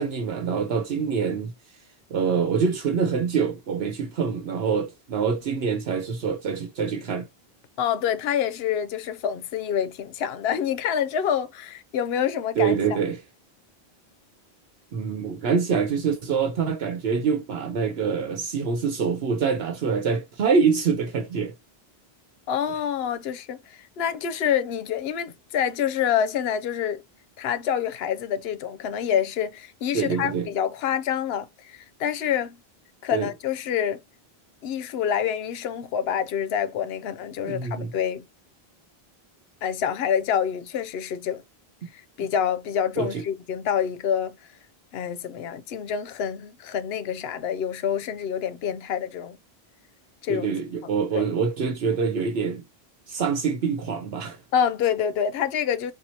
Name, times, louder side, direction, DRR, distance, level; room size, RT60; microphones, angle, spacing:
voice 1, 0.0-1.5 2.1-7.2 12.6-13.2 14.9-21.5 29.9-30.5 33.1-33.3 37.4-37.9 43.0-43.2 50.3-52.6 53.1-54.4, right 6 dB, 75° right, 1.0 m, -25 dB
voice 2, 7.8-13.0 22.5-27.0 27.4-32.6 33.0-34.0 34.6-38.2 39.6-41.4 41.9-44.4 44.9-49.4 50.2-50.5 50.8-51.3 54.5-55.9, left 8 dB, 75° left, 0.8 m, -27 dB
4.4 x 2.4 x 2.7 m
omnidirectional pair, 1.0 m